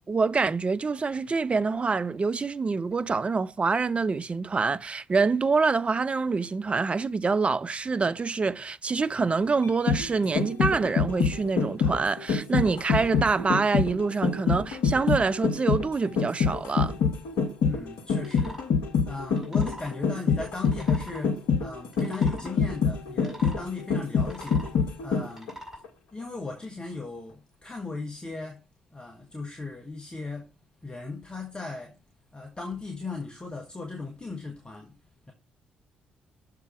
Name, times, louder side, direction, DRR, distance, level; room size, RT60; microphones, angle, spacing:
voice 1, 0.1-17.0, right 4 dB, 30° right, 0.4 m, -26 dB
sound 1, 9.6-25.5 25.8-25.9, left 5 dB, 65° left, 1.2 m, -26 dB
voice 2, 17.6-18.6 19.0-24.6 25.0-25.5 26.1-28.6 28.9-30.5 30.8-31.9 32.3-34.9, left 3 dB, 20° left, 1.5 m, -37 dB
sound 2, 18.2-18.7 19.3-20.0 20.6-21.2 21.9-22.5 23.2-23.6 24.2-24.8 25.3-25.8, equal, 10° right, 3.5 m, -43 dB
6.7 x 4.8 x 4.4 m
figure-of-eight pair, 40°, 4 cm